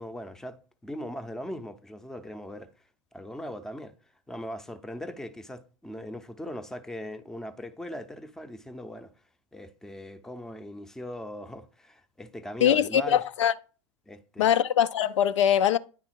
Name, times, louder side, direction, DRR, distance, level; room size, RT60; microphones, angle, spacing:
voice 1, 0.0-2.7 3.1-3.9 4.3-9.1 9.5-13.2 14.1-14.5, equal, 5° left, 0.6 m, -39 dB
voice 2, 12.6-13.5 14.4-15.8, left 9 dB, 75° left, 0.4 m, -22 dB
9.6 x 3.6 x 4.5 m
hypercardioid pair, 90°, 16 cm